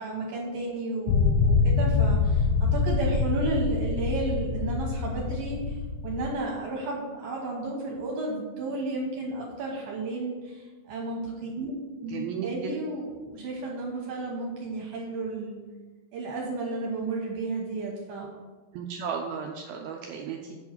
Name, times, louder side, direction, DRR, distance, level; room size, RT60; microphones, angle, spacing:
voice 1, 0.0-11.7 12.0-15.6 16.1-18.3, right 2 dB, 70° right, -2 dB, 2.5 m, -33 dB
sound 1, 1.1-6.4, left 4 dB, 85° left, 2.8 m, -25 dB
voice 2, 12.1-12.7 18.7-20.5, right 7 dB, 90° right, 1 dB, 2.1 m, -34 dB
8.0 x 4.7 x 7.3 m, 1.4 s
omnidirectional pair, 5.0 m